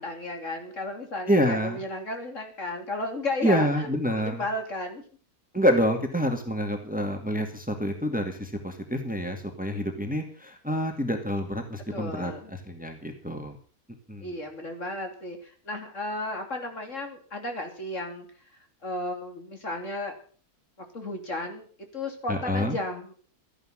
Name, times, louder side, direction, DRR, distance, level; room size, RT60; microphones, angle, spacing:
voice 1, 0.0-5.0 11.9-12.5 14.2-18.3 18.5-20.2 20.8-21.7 21.9-23.1, left 2 dB, 55° left, 4 dB, 3.4 m, -34 dB
voice 2, 1.3-1.8 3.4-4.4 5.5-13.6 14.1-14.3 22.3-22.8, equal, 5° right, 5 dB, 2.2 m, -27 dB
14.0 x 11.0 x 7.5 m, 0.43 s
omnidirectional pair, 1.6 m